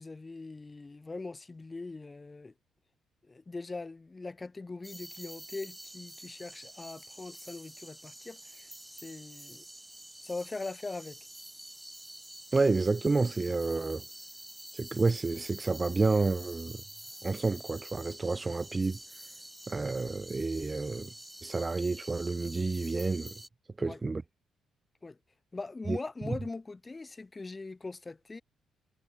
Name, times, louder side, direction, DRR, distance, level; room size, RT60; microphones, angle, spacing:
voice 1, 0.0-2.5 3.2-9.6 10.2-11.2 23.8-24.0 25.0-25.2 25.5-28.4, left 3 dB, 25° left, 3.0 m, -41 dB
sound 1, 4.8-23.5, right 1 dB, 10° right, 4.5 m, -48 dB
voice 2, 12.5-14.0 14.7-16.8 17.2-19.0 19.7-21.1 21.4-23.3 23.8-24.2 25.9-26.0, right 3 dB, 25° right, 0.8 m, -29 dB
cardioid pair, 90°, 0 cm